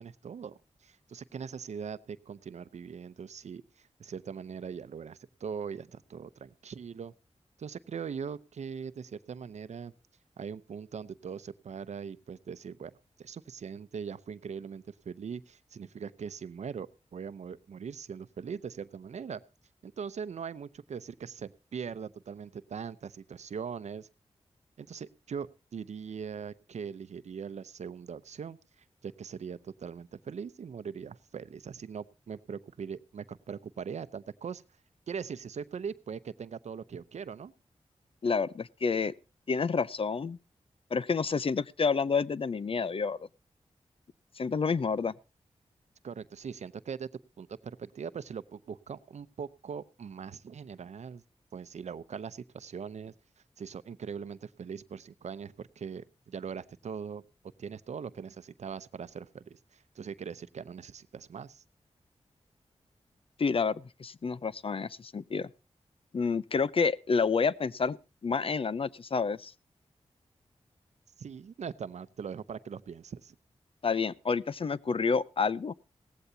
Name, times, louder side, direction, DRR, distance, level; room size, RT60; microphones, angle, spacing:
voice 1, 0.0-7.1 7.6-9.9 10.4-12.9 13.2-19.4 19.8-24.1 24.8-28.6 29.0-34.6 35.1-37.5 46.0-47.1 47.4-51.2 51.5-53.1 53.6-57.2 57.6-61.6 71.2-73.4, right 6 dB, 80° right, 15 dB, 0.7 m, -41 dB
voice 2, 38.2-39.1 39.5-40.4 40.9-43.2 44.4-45.1 63.4-65.5 66.1-68.0 68.2-69.5 73.8-75.7, left 5 dB, 55° left, 18 dB, 0.6 m, -29 dB
17.5 x 15.0 x 2.8 m, 0.30 s
wide cardioid pair, 75°, 11 cm